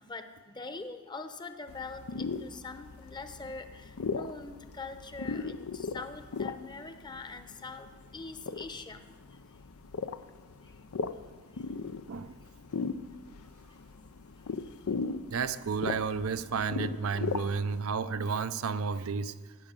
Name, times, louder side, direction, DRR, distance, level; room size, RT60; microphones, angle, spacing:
voice 1, 0.0-9.1 10.6-10.7 11.5-11.6, left 3 dB, 20° left, 8 dB, 0.8 m, -43 dB
sound 1, 1.7-17.8, left 4 dB, 80° left, 0.5 m, -38 dB
voice 2, 15.3-19.4, right 5 dB, 70° right, 12 dB, 0.5 m, -32 dB
15.5 x 6.3 x 8.9 m, 1.4 s
head